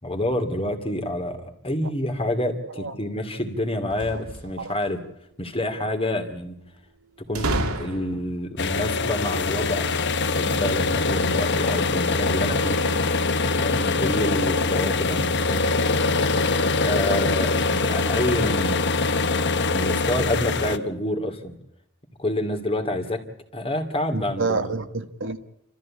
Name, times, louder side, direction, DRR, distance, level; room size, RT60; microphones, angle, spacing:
voice 1, 0.0-5.0 5.4-6.6 7.3-9.9 10.4-12.8 13.5-15.8 16.7-18.8 19.7-21.5 22.2-23.2 23.5-24.8, left 1 dB, 25° left, 2.5 m, -28 dB
sound 1, 3.8-4.9 7.4-8.4, right 1 dB, 80° right, 2.4 m, -29 dB
sound 2, 8.6-20.8, left 3 dB, 50° left, 1.1 m, -23 dB
voice 2, 24.1-25.4, right 3 dB, 55° right, 1.4 m, -28 dB
29.5 x 14.0 x 8.6 m
head